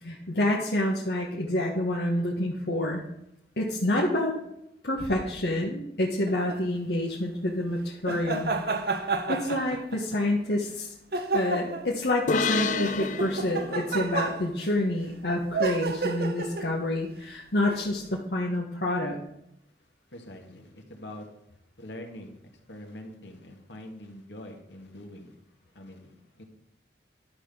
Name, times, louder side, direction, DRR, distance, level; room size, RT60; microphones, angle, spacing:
voice 1, 0.0-3.0 3.6-4.4 4.8-8.5 9.3-10.9 11.3-19.2, left 1 dB, 70° left, -2 dB, 1.4 m, -28 dB
sound 1, 6.3-6.6 8.1-10.2 11.1-11.9 12.4-14.7 15.5-16.8 17.6-17.9, right 3 dB, 60° right, 1.0 m, -31 dB
sound 2, 12.3-15.8, left 5 dB, 45° left, 0.4 m, -32 dB
voice 2, 20.1-21.3 21.8-25.4 25.7-26.4, left 1 dB, 85° left, 3 dB, 2.1 m, -44 dB
11.5 x 5.9 x 7.1 m, 0.79 s
head